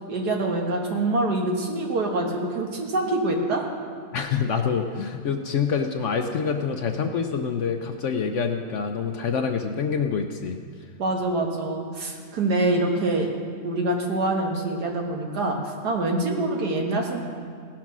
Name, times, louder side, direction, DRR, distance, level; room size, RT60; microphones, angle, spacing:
voice 1, 0.1-3.7 11.0-13.3 13.6-17.2, right 2 dB, 80° right, 1 dB, 2.0 m, -25 dB
voice 2, 4.1-10.6, left 6 dB, 60° left, 5 dB, 0.8 m, -26 dB
17.5 x 6.0 x 6.0 m, 2.1 s
omnidirectional pair, 1.7 m